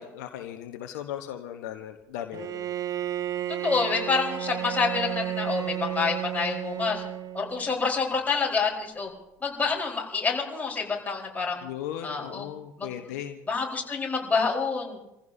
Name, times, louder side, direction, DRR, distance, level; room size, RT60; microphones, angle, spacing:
voice 1, 0.0-2.7 11.6-13.4, left 11 dB, 65° left, 6 dB, 1.1 m, -37 dB
Bowed string instrument, 2.3-7.8, right 11 dB, 35° right, 0.7 m, -32 dB
voice 2, 3.6-7.0 7.3-9.1 9.4-11.6 12.0-12.5 12.8-12.9 13.5-15.0, left 4 dB, 15° left, -3 dB, 4.4 m, -27 dB
29.0 x 15.5 x 2.7 m, 0.90 s
hypercardioid pair, 70°, 10 cm